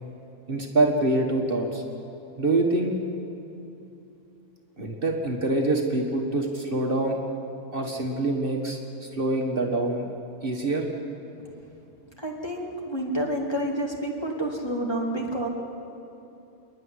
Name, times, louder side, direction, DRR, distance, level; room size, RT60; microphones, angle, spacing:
voice 1, 0.5-1.8 2.4-2.9 4.8-7.2 7.7-10.1 10.4-10.9, right 2 dB, 40° right, 1 dB, 2.0 m, -25 dB
voice 2, 12.2-15.5, right 1 dB, 20° left, -1 dB, 2.2 m, -29 dB
28.5 x 11.0 x 9.9 m, 2.8 s
omnidirectional pair, 1.4 m